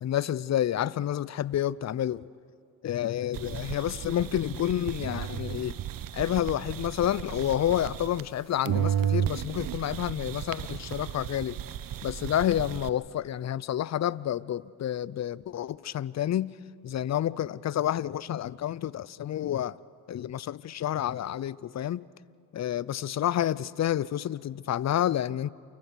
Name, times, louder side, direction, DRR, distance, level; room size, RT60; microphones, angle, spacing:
voice 1, 0.0-2.3 2.8-5.8 6.1-11.6 12.0-16.6 16.8-19.8 20.1-22.0 22.5-25.5, left 11 dB, 40° left, 0.6 m, -29 dB
sound 1, 3.3-8.4 8.7-12.9, right 10 dB, 55° right, 0.9 m, -33 dB
29.0 x 15.0 x 6.0 m
hypercardioid pair, 50°, 40 cm